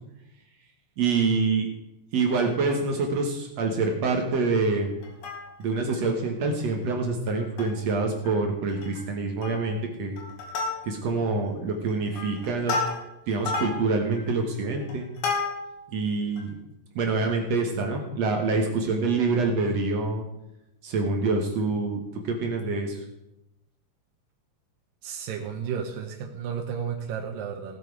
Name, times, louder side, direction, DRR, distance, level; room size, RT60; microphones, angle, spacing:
voice 1, 1.0-1.7 2.1-5.0 5.6-10.2 10.9-12.8 13.3-15.1 15.9-16.5 17.0-20.3 20.8-22.0 22.2-23.0, right 3 dB, 60° right, 3 dB, 2.1 m, -26 dB
Plucked string instrument, 5.0-5.8 6.3-6.4 6.6-6.8 7.3-7.9 8.2-8.4 8.7-9.1 9.4-9.8 10.2-11.2 11.7-15.9 16.4-16.5, left 4 dB, 65° left, 3.7 m, -32 dB
voice 2, 25.0-27.8, right 7 dB, 85° right, 2 dB, 2.6 m, -33 dB
17.0 x 7.6 x 4.7 m, 0.87 s
omnidirectional pair, 3.9 m